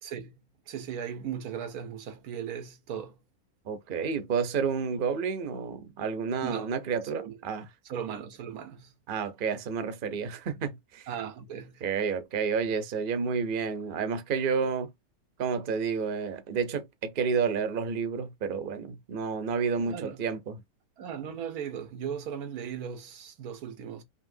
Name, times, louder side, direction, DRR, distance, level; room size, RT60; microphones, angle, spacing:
voice 1, 0.0-0.3 0.7-3.2 6.4-6.7 7.0-7.4 7.8-8.9 11.1-11.8 19.8-20.3 21.0-24.0, right 8 dB, 85° right, 1.4 m, -37 dB
voice 2, 3.7-7.7 9.1-11.1 11.8-14.9 15.4-20.6, right 5 dB, 45° right, 0.8 m, -30 dB
5.5 x 2.8 x 2.7 m
omnidirectional pair, 1.5 m